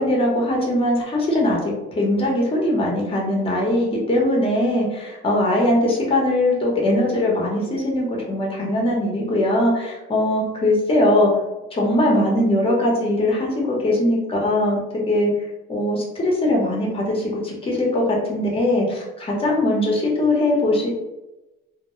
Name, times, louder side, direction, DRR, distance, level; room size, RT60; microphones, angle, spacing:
voice 1, 0.0-1.6 2.0-11.3 11.7-15.3 15.7-20.9, left 1 dB, 30° left, -2 dB, 0.8 m, -20 dB
2.1 x 2.0 x 3.0 m, 1.0 s
cardioid pair, 105°, 20 cm